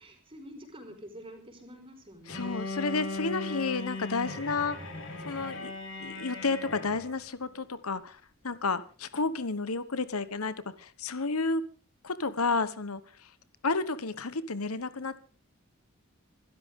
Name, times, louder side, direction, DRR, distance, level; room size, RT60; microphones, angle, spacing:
voice 1, 0.0-2.7, equal, 25° right, 4 dB, 5.0 m, -48 dB
voice 2, 2.3-4.8 5.2-5.7 6.0-11.6 12.0-13.0 13.6-15.3, left 3 dB, 90° left, 14 dB, 1.2 m, -31 dB
Bowed string instrument, 2.3-7.2, left 3 dB, 60° left, 4.0 m, -38 dB
26.5 x 13.0 x 3.8 m, 0.37 s
head